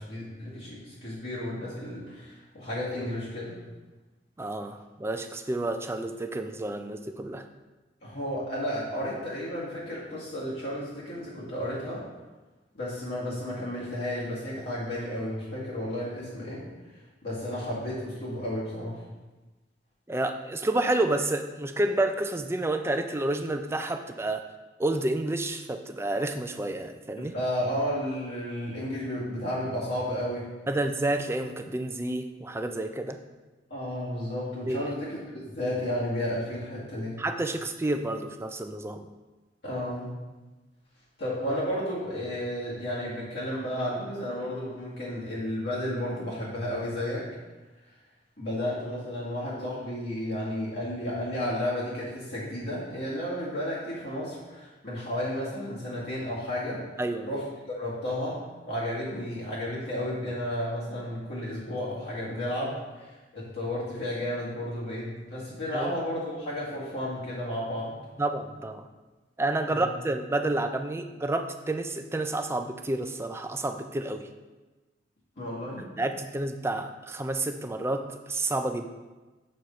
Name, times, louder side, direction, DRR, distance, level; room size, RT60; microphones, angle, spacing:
voice 1, 0.0-3.6 8.0-12.1 12.7-16.6 17.2-19.0 27.2-30.5 33.7-37.2 39.6-40.1 41.2-47.3 48.4-56.8 57.3-67.9 69.7-69.9 75.4-75.9, left 1 dB, 60° left, -8 dB, 2.0 m, -32 dB
voice 2, 4.4-7.5 20.1-24.4 24.8-27.3 30.7-33.2 34.7-34.8 37.2-39.1 57.0-57.4 65.7-65.9 68.2-68.9 69.4-74.3 75.8-78.9, right 2 dB, 15° right, 6 dB, 0.4 m, -30 dB
6.3 x 4.4 x 5.3 m, 1.2 s
head